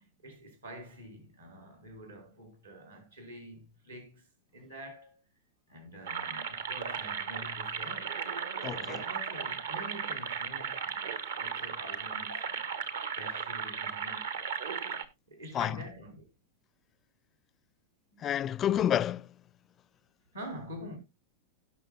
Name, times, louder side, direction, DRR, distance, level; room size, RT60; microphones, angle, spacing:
voice 1, 0.0-4.2 4.5-5.2 5.7-8.2 8.7-14.4 15.3-16.3 18.1-18.2 20.3-21.0, right 1 dB, 80° right, 4.9 m, -47 dB
sound 1, 6.1-15.0, right 6 dB, 65° right, 1.2 m, -36 dB
voice 2, 8.6-9.0 15.5-15.8 18.2-19.3, left 10 dB, 30° left, 0.4 m, -29 dB
17.5 x 6.4 x 2.4 m
figure-of-eight pair, 90°, 0 cm